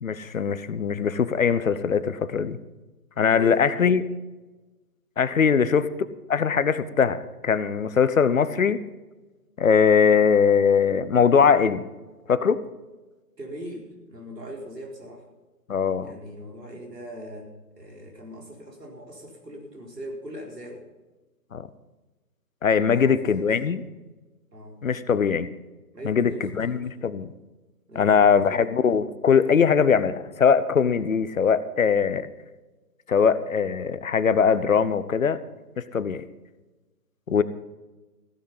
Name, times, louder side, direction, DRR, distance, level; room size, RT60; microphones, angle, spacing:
voice 1, 0.0-2.6 3.2-4.0 5.2-5.9 6.3-8.8 9.6-11.9 12.3-12.6 15.7-16.1 21.5-21.7 22.6-23.8 24.8-25.5 26.0-27.3 28.0-32.3 33.1-35.4 35.8-36.2 37.3-37.4, left 6 dB, 55° left, 15 dB, 0.9 m, -21 dB
voice 2, 3.2-3.9 5.5-5.7 13.4-15.2 16.0-20.9 22.9-23.7 24.5-24.8 25.9-26.9 27.9-28.7, equal, 80° right, 1 dB, 4.5 m, -41 dB
15.5 x 10.0 x 5.5 m, 1.2 s
figure-of-eight pair, 145°, 48 cm